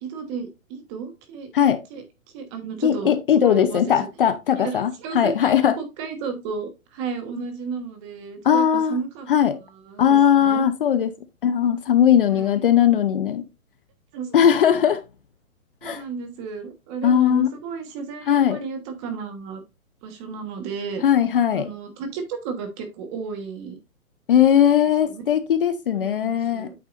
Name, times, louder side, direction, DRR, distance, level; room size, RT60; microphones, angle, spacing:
voice 1, 0.0-1.5 1.9-2.0 2.3-3.1 3.4-4.1 4.6-9.3 9.9-10.6 12.3-12.6 14.1-14.3 15.8-19.6 20.0-21.0 21.5-23.8 25.0-25.2 25.9-26.7, right 5 dB, 20° right, 1.4 m, -33 dB
voice 2, 2.8-5.8 8.4-9.0 9.3-9.6 10.0-11.1 11.4-13.4 14.3-15.0 15.8-16.0 17.0-17.5 18.3-18.6 21.0-21.7 24.3-26.7, left 9 dB, 40° left, 0.7 m, -19 dB
8.7 x 6.6 x 2.5 m
hypercardioid pair, 160°, 42 cm